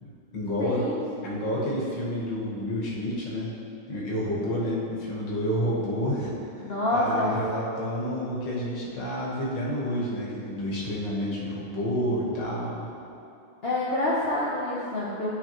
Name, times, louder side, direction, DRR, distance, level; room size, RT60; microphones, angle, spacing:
voice 1, 0.0-0.9 1.2-3.5 3.9-12.9, equal, 60° left, -5 dB, 1.9 m, -29 dB
voice 2, 0.6-1.4 6.6-7.3 13.6-15.3, left 1 dB, 80° left, -7 dB, 0.5 m, -27 dB
11.5 x 4.6 x 3.0 m, 2.7 s
omnidirectional pair, 2.3 m